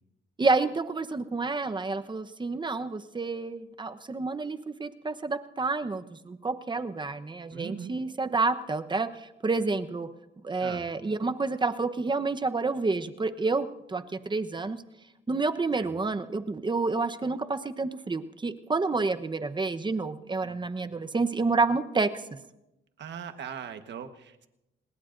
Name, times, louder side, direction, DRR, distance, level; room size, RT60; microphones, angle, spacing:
voice 1, 0.4-10.1 10.4-14.8 15.3-22.1, right 3 dB, 25° right, 9 dB, 1.0 m, -29 dB
voice 2, 7.5-7.9 10.6-10.9 15.8-15.9 20.4-20.6 23.0-24.5, right 8 dB, 65° right, 8 dB, 1.4 m, -40 dB
27.0 x 20.0 x 2.6 m, 0.93 s
cardioid pair, 90°, 20 cm